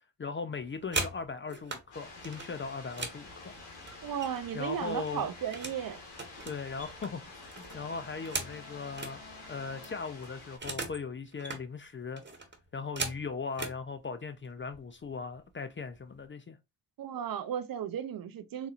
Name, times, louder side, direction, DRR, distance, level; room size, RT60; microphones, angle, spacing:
voice 1, 0.2-3.5 4.5-5.3 6.5-9.2 9.5-12.2 12.7-16.6, left 5 dB, 25° left, 0.5 m, -39 dB
sound 1, 0.6-1.8 2.2-4.6 4.9-5.8 6.1-9.2 9.5-9.6 9.8-11.0 11.3-11.6 12.2-13.8 14.6-14.8 15.1-15.4 15.7-16.3, right 3 dB, 20° right, 1.2 m, -39 dB
sound 2, 1.9-10.6, left 2 dB, 80° left, 1.2 m, -48 dB
voice 2, 4.0-6.0 17.0-18.7, right 9 dB, 45° right, 0.6 m, -35 dB
4.0 x 2.8 x 2.5 m
hypercardioid pair, 50°, 48 cm